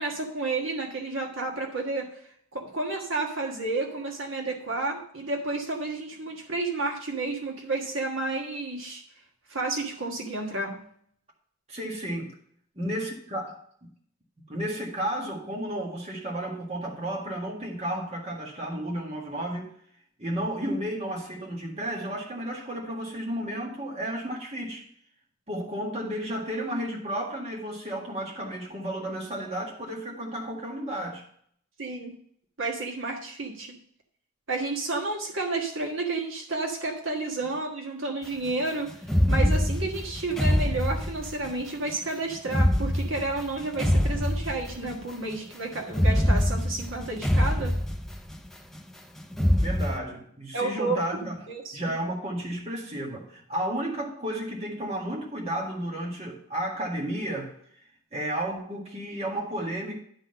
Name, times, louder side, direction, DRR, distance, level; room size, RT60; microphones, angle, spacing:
voice 1, 0.0-2.2 2.5-9.0 9.5-10.8 31.8-32.1 32.6-33.8 34.5-38.9 39.3-47.8 50.5-51.2 51.5-51.9, right 2 dB, 65° right, 1.5 m, -31 dB
voice 2, 11.7-12.3 12.8-13.6 14.5-19.7 20.2-24.9 25.5-31.2 49.6-51.3 51.7-57.5 58.1-60.0, right 1 dB, 30° right, 1.7 m, -32 dB
sound 1, 39.0-41.5 42.5-45.0 45.9-48.5 49.3-50.0, equal, ahead, 0.4 m, -24 dB
11.5 x 3.9 x 6.6 m
head